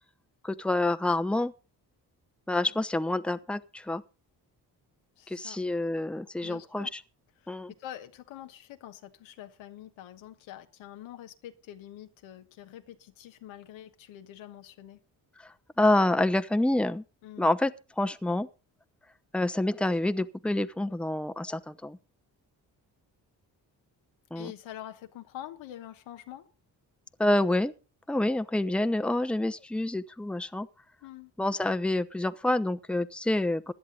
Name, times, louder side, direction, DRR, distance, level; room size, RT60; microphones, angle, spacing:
voice 1, 0.4-1.5 2.5-4.0 5.3-7.0 7.5-7.7 15.8-17.0 17.4-18.5 19.3-22.0 24.3-24.5 27.2-27.7 28.1-30.7 31.4-33.7, left 1 dB, ahead, 0.9 m, -27 dB
voice 2, 5.2-5.6 6.4-6.9 7.4-15.0 17.2-17.5 24.3-26.5 31.0-31.3, left 12 dB, 90° left, 1.3 m, -45 dB
16.5 x 11.0 x 3.9 m
supercardioid pair, 50°, 45 cm